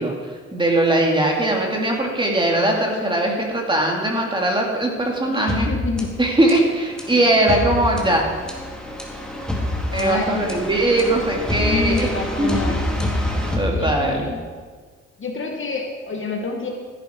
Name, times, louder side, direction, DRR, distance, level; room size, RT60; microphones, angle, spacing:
voice 1, 0.0-5.7 6.2-8.2 9.9-12.1 12.4-12.5 13.6-14.3, right 1 dB, 15° right, 0 dB, 2.8 m, -20 dB
voice 2, 5.3-6.1 9.9-10.5 11.6-12.8 13.6-14.4 15.2-16.7, left 3 dB, 40° left, 2 dB, 1.9 m, -28 dB
sound 1, 5.5-14.4, left 1 dB, 5° left, 2.2 m, -27 dB
15.0 x 10.0 x 4.7 m, 1.5 s
cardioid pair, 90°, 30 cm